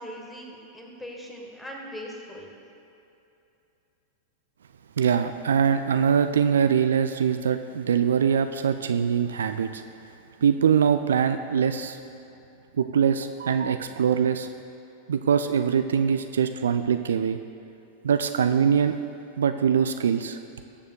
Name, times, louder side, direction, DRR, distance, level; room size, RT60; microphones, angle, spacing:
voice 1, 0.0-2.5, equal, 10° left, 0 dB, 1.6 m, -40 dB
voice 2, 5.0-9.8 10.4-12.0 12.7-14.5 15.1-17.4 18.0-19.0 19.4-20.4, right 7 dB, 65° right, 9 dB, 0.3 m, -23 dB
19.5 x 7.1 x 2.3 m, 2.8 s
figure-of-eight pair, 90°, 0 cm